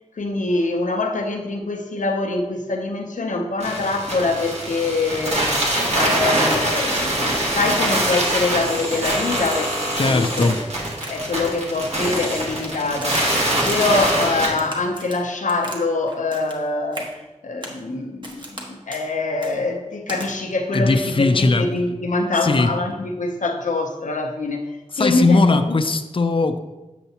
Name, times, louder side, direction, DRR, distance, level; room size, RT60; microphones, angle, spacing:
voice 1, 0.1-5.6 5.9-10.5 11.1-13.2 13.6-25.8, left 3 dB, 85° left, 4 dB, 0.7 m, -24 dB
sound 1, 3.6-14.5, right 1 dB, 60° right, 1.7 m, -23 dB
Crack, 9.4-9.9 10.4-10.7 11.0-11.4 11.7-12.7 13.0-13.8 14.3-15.8 16.1-16.6 16.9-17.1 17.6-17.8 18.2-18.6 18.9-19.1 19.4-19.6 20.1-20.3, right 1 dB, 40° right, 1.4 m, -37 dB
voice 2, 10.0-10.6 20.7-21.7 22.4-22.7 24.9-26.6, left 3 dB, 45° left, 7 dB, 0.5 m, -18 dB
8.2 x 6.7 x 2.8 m, 1.1 s
wide cardioid pair, 55°, 13 cm